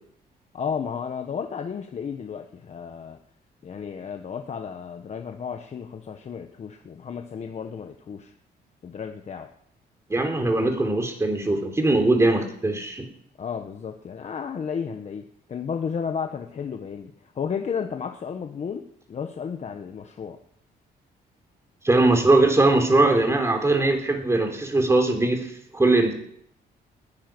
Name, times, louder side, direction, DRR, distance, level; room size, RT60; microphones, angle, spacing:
voice 1, 0.5-3.2 3.6-8.3 8.8-9.5 13.4-20.4, left 6 dB, 40° left, 5 dB, 1.3 m, -33 dB
voice 2, 10.1-13.1 21.8-26.1, right 2 dB, 15° right, 4 dB, 3.6 m, -21 dB
20.0 x 10.5 x 6.2 m, 0.68 s
cardioid pair, 120°, 17 cm